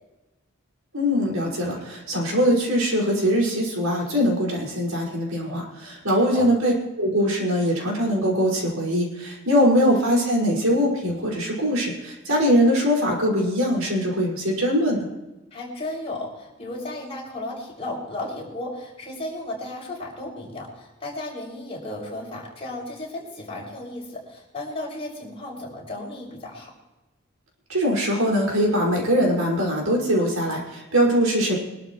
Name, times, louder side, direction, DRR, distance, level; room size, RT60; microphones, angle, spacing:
voice 1, 0.9-15.1 27.7-31.6, equal, 85° right, -2 dB, 5.5 m, -22 dB
voice 2, 6.2-6.5 9.5-9.8 15.5-26.7, left 1 dB, 30° left, -4 dB, 6.4 m, -34 dB
24.5 x 12.5 x 3.1 m, 1.0 s
head